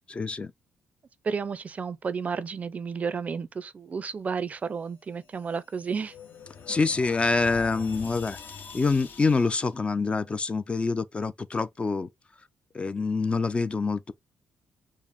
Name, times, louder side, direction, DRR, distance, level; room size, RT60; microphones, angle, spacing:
voice 1, 0.1-0.5 6.7-8.4 8.7-12.1 12.7-14.1, left 4 dB, 30° left, 0.4 m, -26 dB
voice 2, 1.2-6.2, right 5 dB, 40° right, 0.4 m, -32 dB
sound 1, 5.2-9.7, left 6 dB, 55° left, 0.9 m, -44 dB
4.7 x 2.0 x 3.3 m
cardioid pair, 85°, 4 cm